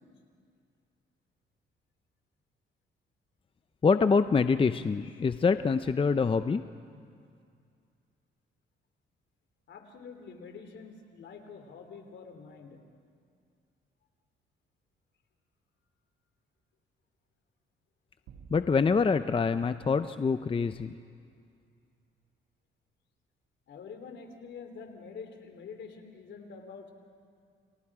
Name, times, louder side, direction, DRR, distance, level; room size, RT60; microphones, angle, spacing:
voice 1, 3.8-6.6 18.5-21.0, left 5 dB, 25° left, 11 dB, 0.6 m, -25 dB
voice 2, 9.7-12.8 23.7-26.9, left 5 dB, 65° left, 6 dB, 3.4 m, -46 dB
sound 1, 18.3-20.8, right 6 dB, 90° right, 2.0 m, -55 dB
30.0 x 28.0 x 4.9 m, 2.3 s
cardioid pair, 90°, 20 cm